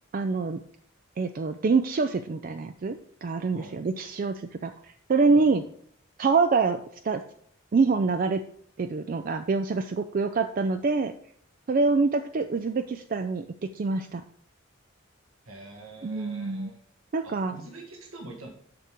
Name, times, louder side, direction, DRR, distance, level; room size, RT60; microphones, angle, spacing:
voice 1, 0.1-0.6 1.2-5.6 6.2-6.8 7.0-7.2 7.7-8.4 8.8-11.1 11.7-14.2 16.0-16.7 17.1-17.5, right 4 dB, 40° right, 8 dB, 0.3 m, -25 dB
voice 2, 3.5-3.8 5.3-5.6 15.5-16.8 17.2-18.5, right 2 dB, 80° right, 1 dB, 1.7 m, -45 dB
6.7 x 6.1 x 5.1 m, 0.63 s
head